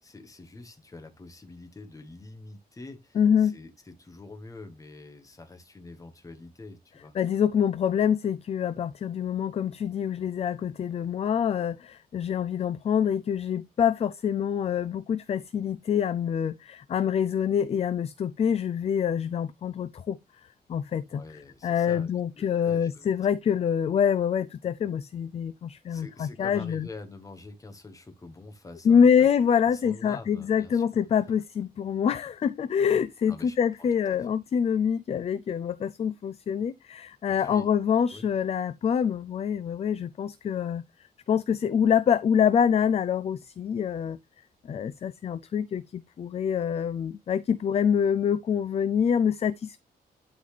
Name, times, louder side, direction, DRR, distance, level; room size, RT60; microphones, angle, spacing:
voice 1, 0.0-7.2 21.1-23.1 25.9-29.3 29.6-31.0 33.2-34.2 37.4-37.7 38.1-38.3, left 2 dB, 20° left, 1.3 m, -46 dB
voice 2, 3.2-3.6 7.2-20.2 20.7-21.2 21.6-26.9 28.8-40.8 41.3-44.2 44.7-49.8, left 8 dB, 40° left, 0.4 m, -26 dB
11.5 x 4.0 x 3.3 m
wide cardioid pair, 160°, 17 cm